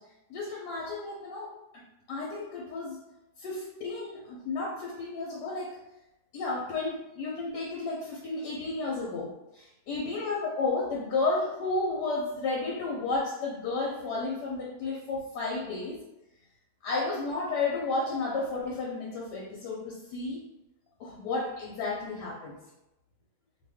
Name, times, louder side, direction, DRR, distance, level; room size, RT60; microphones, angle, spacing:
voice 1, 0.3-1.6 2.1-3.0 3.4-5.8 6.3-16.0 16.8-20.4 21.0-22.6, left 3 dB, 80° left, -4 dB, 1.2 m, -32 dB
2.7 x 2.5 x 3.3 m, 0.92 s
omnidirectional pair, 1.8 m